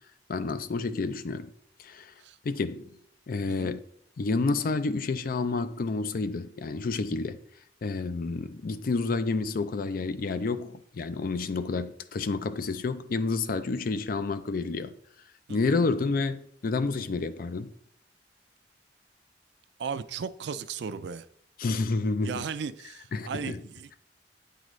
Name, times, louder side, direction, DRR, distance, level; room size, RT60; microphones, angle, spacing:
voice 1, 0.3-1.5 1.8-2.1 2.4-2.9 3.3-3.8 4.2-7.4 7.8-14.9 15.5-17.7 21.6-22.5 23.1-23.6, left 3 dB, 50° left, 0.4 m, -29 dB
voice 2, 19.8-21.3 22.2-23.9, right 6 dB, 70° right, 0.4 m, -36 dB
8.8 x 3.8 x 3.1 m
head